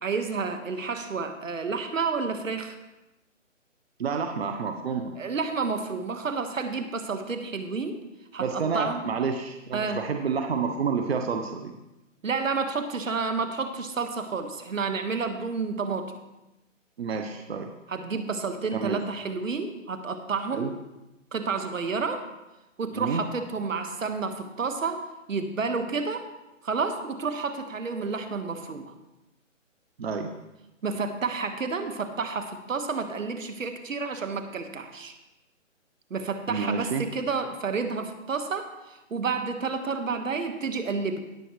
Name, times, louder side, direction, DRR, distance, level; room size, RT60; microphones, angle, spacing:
voice 1, 0.0-2.7 5.2-8.0 8.3-9.0 9.7-10.0 12.2-16.1 17.9-20.7 21.3-22.2 22.8-26.2 26.6-28.9 30.8-35.1 36.1-41.2, right 4 dB, 75° right, 7 dB, 1.5 m, -30 dB
voice 2, 4.0-5.1 8.4-11.7 17.0-17.7 18.7-19.0 20.5-20.7 22.9-23.2 30.0-30.3 36.5-37.1, right 5 dB, 50° right, 5 dB, 0.9 m, -29 dB
18.5 x 7.0 x 3.1 m, 0.97 s
hypercardioid pair, 165°, 39 cm